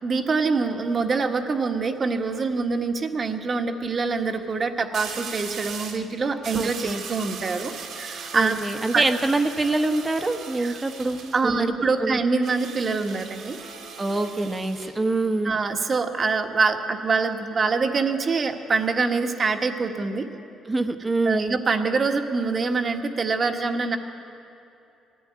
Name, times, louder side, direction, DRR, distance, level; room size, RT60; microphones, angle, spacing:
voice 1, 0.0-8.6 8.9-9.0 10.6-10.8 11.3-13.6 15.4-20.3 21.2-24.0, right 4 dB, 35° right, 5 dB, 1.6 m, -25 dB
sound 1, 1.8-2.1 4.9-6.1 6.4-11.4 12.4-15.0, right 5 dB, 70° right, 2.4 m, -38 dB
voice 2, 6.5-7.0 8.3-11.7 12.0-12.2 14.0-15.5 20.7-21.6, right 2 dB, 20° right, 7 dB, 1.3 m, -25 dB
20.5 x 15.0 x 9.6 m, 2.8 s
cardioid pair, 100°, 0 cm